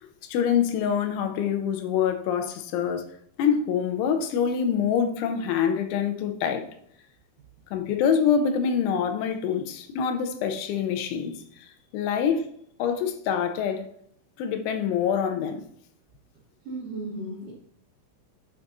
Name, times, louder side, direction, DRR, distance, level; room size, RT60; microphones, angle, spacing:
voice 1, 0.0-3.1 3.4-6.7 7.7-12.5 12.8-13.8 14.4-15.6, left 7 dB, 80° left, 3.1 m, -25 dB
voice 2, 16.7-17.5, right 2 dB, 70° right, 2.0 m, -35 dB
9.5 x 5.9 x 2.7 m
omnidirectional pair, 5.6 m